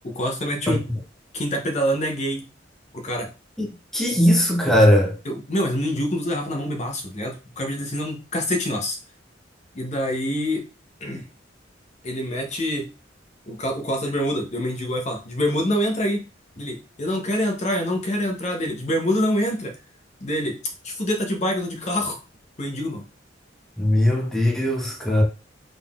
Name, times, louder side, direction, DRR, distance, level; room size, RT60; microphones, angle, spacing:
voice 1, 0.0-0.8 1.3-2.5 2.9-3.3 4.1-4.2 5.3-9.0 9.7-10.7 11.0-11.3 12.0-12.9 13.5-16.3 16.6-19.8 20.2-20.6 20.8-22.2 22.6-23.1, equal, 35° left, 0.7 m, -26 dB
voice 2, 3.9-5.1 23.8-25.2, equal, ahead, 0.7 m, -19 dB
3.8 x 3.7 x 2.3 m
head